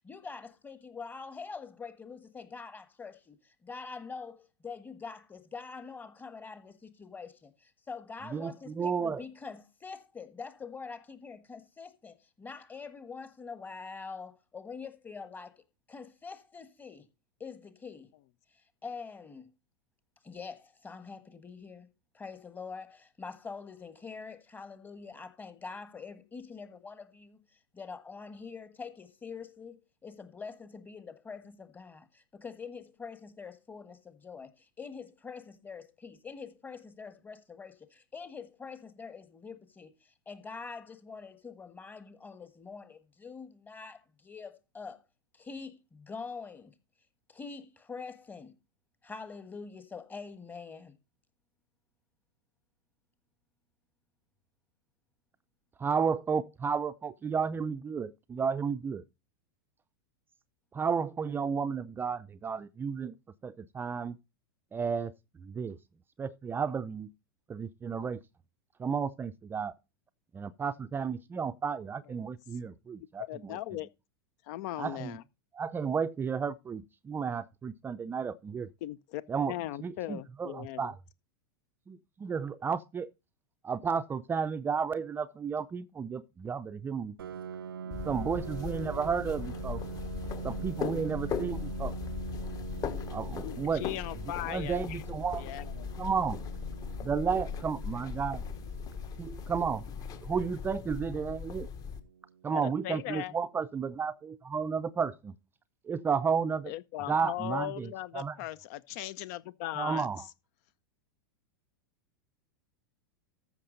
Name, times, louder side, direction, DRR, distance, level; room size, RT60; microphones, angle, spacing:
voice 1, 0.0-15.5 15.9-17.1 17.4-18.1 18.5-19.5 20.2-21.9 22.1-45.0 45.3-46.7 47.3-48.6 49.0-51.0, left 5 dB, 15° left, 1.3 m, -45 dB
voice 2, 8.2-9.2 55.8-59.0 60.7-63.2 63.4-64.2 64.7-65.8 66.2-67.1 67.5-68.2 68.8-69.7 70.3-73.6 74.8-75.2 75.5-78.7 79.3-81.0 81.9-83.1 83.6-87.2 87.8-89.8 90.4-91.9 93.1-93.9 94.1-95.5 96.0-96.4 97.0-98.5 99.2-99.9 100.2-101.7 102.4-105.3 105.8-106.7 107.1-108.4 109.8-110.3, right 6 dB, 20° right, 0.5 m, -33 dB
voice 3, 73.3-73.9 74.5-75.2 78.8-79.2 79.5-80.8 93.0-93.1 93.4-95.0 95.4-95.6 102.6-103.3 106.7-110.1, left 14 dB, 50° left, 0.5 m, -38 dB
Piano, 87.2-102.6, right 6 dB, 80° right, 0.5 m, -44 dB
sound 1, 87.9-102.0, left 7 dB, 30° left, 1.2 m, -39 dB
14.0 x 5.9 x 3.9 m
hypercardioid pair, 95°, 12 cm